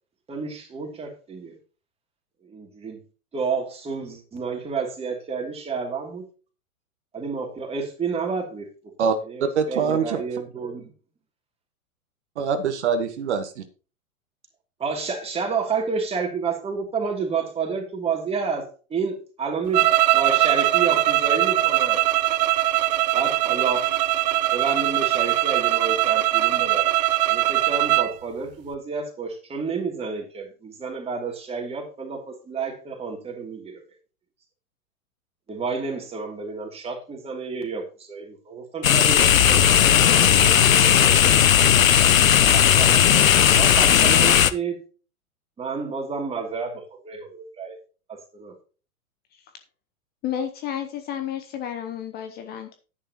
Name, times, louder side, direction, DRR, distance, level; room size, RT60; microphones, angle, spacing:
voice 1, 0.3-1.5 2.4-3.0 3.3-6.3 7.1-8.7 9.2-10.9 14.8-22.0 23.1-23.9 24.5-33.8 35.5-41.8 42.5-44.8 45.6-47.8 48.1-48.5, right 5 dB, 15° right, 2.9 m, -30 dB
voice 2, 9.5-10.2 12.4-13.6, right 6 dB, 50° right, 1.5 m, -24 dB
sound 1, 19.7-28.1, right 16 dB, 30° right, 0.5 m, -21 dB
sound 2, 38.8-44.5, left 9 dB, 65° left, 0.8 m, -16 dB
voice 3, 50.2-52.8, left 9 dB, 20° left, 0.9 m, -31 dB
11.5 x 10.0 x 3.0 m
figure-of-eight pair, 100°, 43 cm